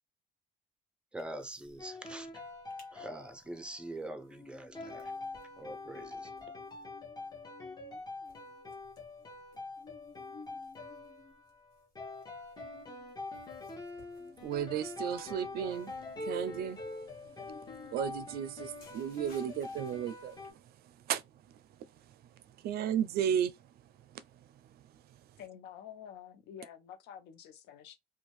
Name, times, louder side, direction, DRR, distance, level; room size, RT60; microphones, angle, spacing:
voice 1, 1.1-2.3 2.9-5.1 5.6-6.3, right 1 dB, 5° right, 0.5 m, -44 dB
sound 1, 1.2-1.8 2.1-2.2 2.5-2.9 3.3-20.5, left 4 dB, 55° left, 1.2 m, -58 dB
sound 2, 1.8-4.0 4.7-20.5, left 2 dB, 25° left, 1.1 m, -45 dB
voice 2, 14.4-15.9 16.2-16.8 17.9-20.3 21.1-21.2 22.6-23.5, right 9 dB, 65° right, 0.4 m, -33 dB
voice 3, 25.4-28.0, left 9 dB, 80° left, 0.7 m, -49 dB
2.6 x 2.3 x 3.0 m
cardioid pair, 110°, 17 cm